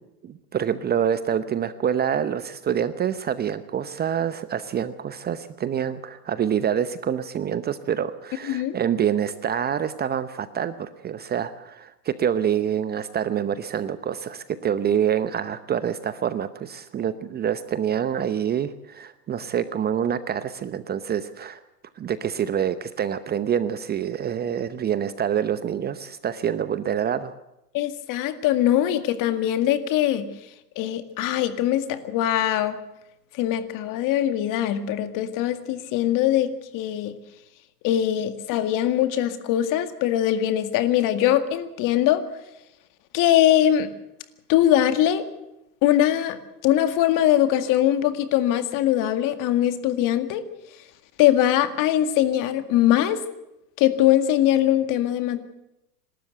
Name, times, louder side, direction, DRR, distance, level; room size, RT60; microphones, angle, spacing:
voice 1, 0.2-21.6 22.0-27.3, right 9 dB, 20° right, 13 dB, 0.8 m, -26 dB
voice 2, 8.5-8.8 27.7-30.3 30.8-32.8 33.4-37.2 37.8-42.2 43.1-43.9 44.5-45.2 45.8-50.4 51.2-53.2 53.8-55.4, left 12 dB, 45° left, 10 dB, 2.0 m, -22 dB
27.0 x 13.0 x 8.1 m, 0.88 s
hypercardioid pair, 110°, 46 cm